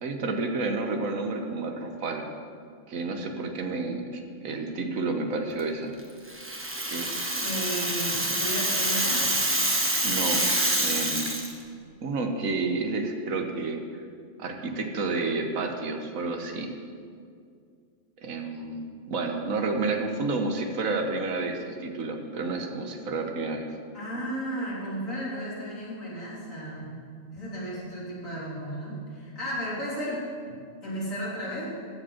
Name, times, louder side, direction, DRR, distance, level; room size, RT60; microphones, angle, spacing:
voice 1, 0.0-2.3 2.9-5.9 6.8-7.7 10.0-10.5 10.8-11.6 12.0-14.0 14.4-16.7 18.2-23.7, right 3 dB, 90° right, 4 dB, 1.5 m, -30 dB
Rattle (instrument), 6.3-11.5, right 1 dB, 10° right, 1.0 m, -26 dB
voice 2, 7.4-9.3 23.9-26.9 27.3-31.6, equal, 75° left, -8 dB, 3.9 m, -34 dB
14.5 x 5.2 x 7.1 m, 2.2 s
omnidirectional pair, 1.4 m